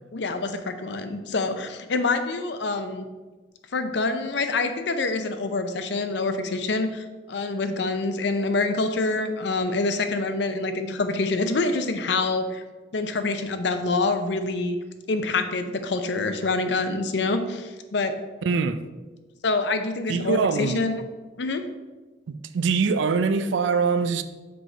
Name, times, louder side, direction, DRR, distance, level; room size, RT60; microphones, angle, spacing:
voice 1, 0.1-3.0 3.7-12.6 12.9-14.8 15.1-18.1 19.4-21.1 21.4-21.6, left 3 dB, 65° left, 0.6 m, -26 dB
voice 2, 18.4-18.8 20.1-20.9 22.3-24.2, right 5 dB, 75° right, 0.4 m, -23 dB
6.1 x 4.7 x 3.9 m
head